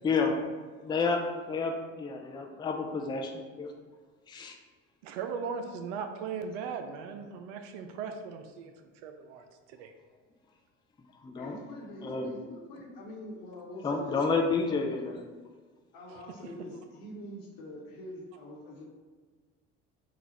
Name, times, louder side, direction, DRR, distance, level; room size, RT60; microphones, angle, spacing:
voice 1, 0.0-0.4 0.8-1.2 1.5-3.7 4.3-4.6 11.2-11.6 12.0-12.3 13.8-15.2, left 4 dB, 10° left, 3 dB, 0.4 m, -30 dB
voice 2, 5.0-8.7 9.0-9.9, right 6 dB, 70° right, 7 dB, 0.5 m, -38 dB
voice 3, 11.3-14.2 15.9-18.8, left 1 dB, 60° left, -1 dB, 1.1 m, -44 dB
3.9 x 2.4 x 4.1 m, 1.5 s
hypercardioid pair, 60°, 38 cm